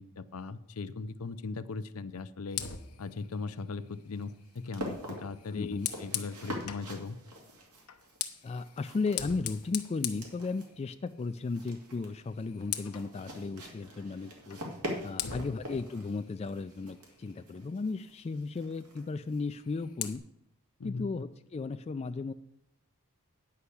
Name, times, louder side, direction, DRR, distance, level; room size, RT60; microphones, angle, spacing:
voice 1, 0.0-2.6 3.0-7.2 15.2-15.5 20.8-21.1, left 4 dB, 70° left, 13 dB, 0.6 m, -39 dB
Fire, 2.5-6.9 7.8-11.1 11.4-11.7 12.0-13.1 14.5-14.6 15.2-17.5 19.4-20.2, left 11 dB, 90° left, 0.9 m, -41 dB
sound 1, 3.2-19.5, equal, 85° right, 2.4 m, -45 dB
voice 2, 5.5-5.9 8.4-14.6 15.0-20.2 20.8-22.3, left 4 dB, 30° left, 9 dB, 0.3 m, -35 dB
9.6 x 5.7 x 8.4 m, 0.78 s
head